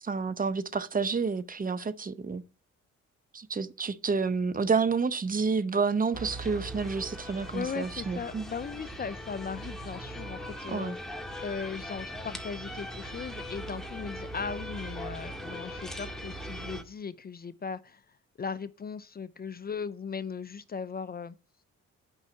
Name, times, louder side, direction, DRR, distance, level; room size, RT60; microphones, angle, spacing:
voice 1, 0.0-2.4 3.3-8.5 10.7-10.9, right 5 dB, 30° right, 0.7 m, -29 dB
sound 1, 6.1-16.8, equal, ahead, 1.8 m, -40 dB
voice 2, 7.5-11.0 11.4-18.0 18.4-21.3, left 6 dB, 30° left, 0.5 m, -38 dB
8.9 x 5.6 x 5.8 m
cardioid pair, 90°, 30 cm